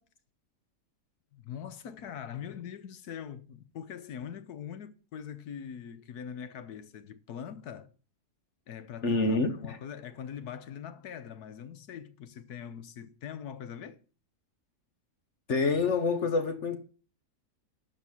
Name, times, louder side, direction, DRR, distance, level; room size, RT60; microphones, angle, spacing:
voice 1, 1.3-7.9 8.7-14.0, left 8 dB, 75° left, 1.4 m, -42 dB
voice 2, 9.0-9.8 15.5-16.8, left 3 dB, 50° left, 1.3 m, -27 dB
12.0 x 4.8 x 7.2 m
omnidirectional pair, 1.7 m